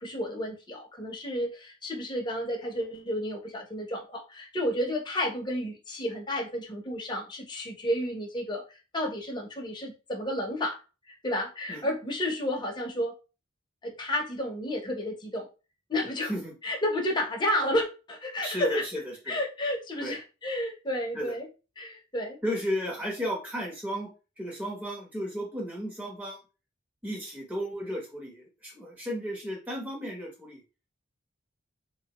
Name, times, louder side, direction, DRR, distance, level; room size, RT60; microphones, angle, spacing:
voice 1, 0.0-10.8 11.1-13.1 13.8-15.5 15.9-16.3 16.6-18.8 19.3-21.5 21.8-22.4, left 1 dB, 20° left, 1 dB, 0.7 m, -31 dB
voice 2, 18.4-19.4 20.0-20.2 21.1-21.3 22.4-24.1 24.4-26.4 27.0-30.6, equal, 10° right, -3 dB, 0.8 m, -34 dB
3.3 x 2.2 x 2.9 m, 0.32 s
head